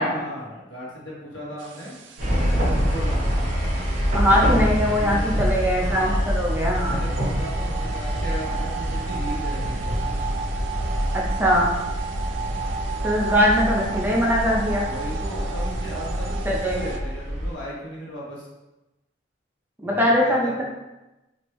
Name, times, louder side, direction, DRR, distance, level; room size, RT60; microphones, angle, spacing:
voice 1, 0.0-1.9 2.3-3.2 4.1-5.5 5.8-6.3 6.7-9.9 14.8-18.5 19.8-20.6, equal, 80° left, -5 dB, 1.1 m, -36 dB
sound 1, 1.6-17.0, right 4 dB, 85° right, 0.3 m, -34 dB
sound 2, 2.2-17.5, equal, 45° right, 0.8 m, -26 dB
voice 2, 4.1-7.0 11.1-11.7 13.0-14.9 16.5-16.8 19.8-20.6, equal, 10° right, -3 dB, 0.4 m, -21 dB
3.1 x 2.5 x 3.1 m, 1.0 s
head